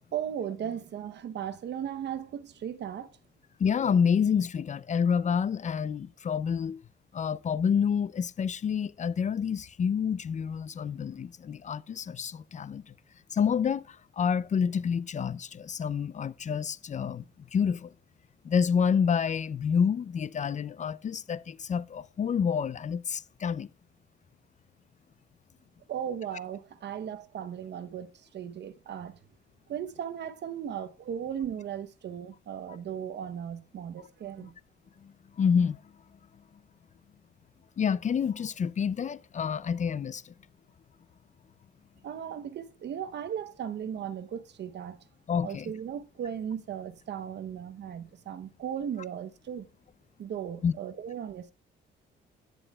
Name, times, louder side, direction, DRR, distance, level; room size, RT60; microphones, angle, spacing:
voice 1, 0.1-3.1 25.9-29.2 29.7-34.5 42.0-45.0 45.4-49.7 50.2-51.5, right 9 dB, 60° right, 0.8 m, -37 dB
voice 2, 3.6-6.8 7.1-12.9 13.3-17.9 18.4-23.7 35.0-35.8 37.8-40.3 45.3-45.7 50.6-50.7, left 7 dB, 40° left, 0.5 m, -28 dB
11.0 x 10.0 x 2.3 m
cardioid pair, 90°, 20 cm